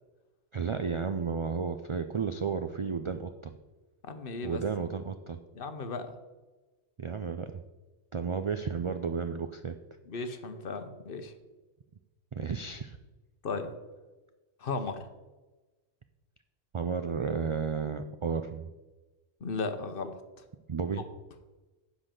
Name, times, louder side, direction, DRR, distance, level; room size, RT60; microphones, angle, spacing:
voice 1, 0.5-3.5 4.4-5.4 7.0-7.6 8.1-9.8 10.2-10.3 12.3-13.0 16.7-18.7 20.7-21.0, right 5 dB, 55° right, 8 dB, 0.3 m, -32 dB
voice 2, 4.1-4.6 5.5-6.1 10.1-11.3 13.4-13.7 14.6-15.0 19.4-20.2, left 3 dB, 55° left, 8 dB, 1.0 m, -35 dB
10.0 x 4.1 x 7.4 m, 1.2 s
omnidirectional pair, 1.1 m